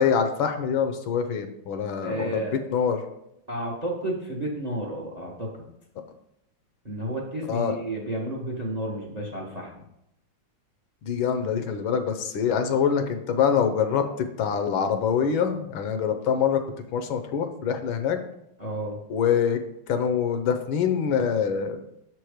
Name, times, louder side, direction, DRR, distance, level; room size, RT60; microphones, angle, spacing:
voice 1, 0.0-2.4 2.7-3.0 7.5-7.7 11.0-16.6 16.9-18.2 19.1-19.6 19.9-21.8, left 7 dB, 75° left, 7 dB, 1.5 m, -25 dB
voice 2, 2.0-2.6 3.5-5.7 6.8-9.8 18.6-19.0, right 1 dB, 35° right, 0 dB, 0.7 m, -31 dB
6.8 x 4.6 x 4.9 m, 0.79 s
omnidirectional pair, 2.3 m